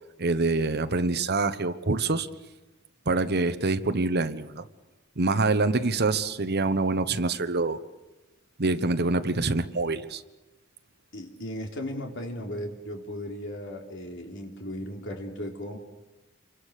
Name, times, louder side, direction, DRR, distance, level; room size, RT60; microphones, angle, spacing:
voice 1, 0.2-2.3 3.1-4.6 5.2-7.8 8.6-10.2, right 3 dB, 50° right, 10 dB, 1.2 m, -25 dB
voice 2, 5.7-6.1 11.1-15.8, equal, 60° left, 2 dB, 3.9 m, -36 dB
28.5 x 24.5 x 6.7 m, 1.1 s
head